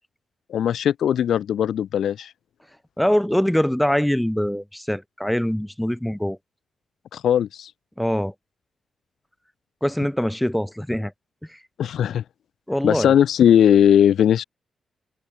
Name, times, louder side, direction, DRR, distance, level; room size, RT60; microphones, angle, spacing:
voice 1, 0.5-2.3 7.1-7.7 11.8-12.2 12.8-14.4, left 9 dB, 85° left, 1.7 m, -18 dB
voice 2, 3.0-6.4 8.0-8.3 9.8-11.1 11.5-11.6 12.7-13.1, equal, 5° left, 4.6 m, -23 dB
open air
wide cardioid pair, 155°, 0 cm